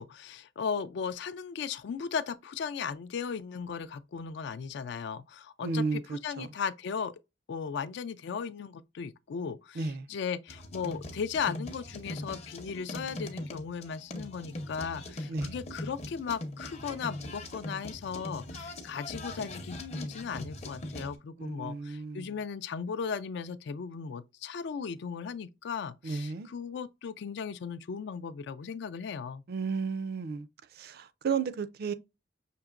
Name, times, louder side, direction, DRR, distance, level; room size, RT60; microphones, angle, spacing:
voice 1, 0.0-7.1 7.5-29.4, left 6 dB, 65° left, 0.4 m, -37 dB
voice 2, 5.6-6.5 9.8-10.1 15.3-15.5 21.4-22.3 26.0-26.5 29.5-30.5 30.8-31.9, right 4 dB, 55° right, 0.4 m, -33 dB
sound 1, 10.5-21.2, left 1 dB, 35° left, 0.7 m, -41 dB
5.9 x 2.9 x 2.4 m
head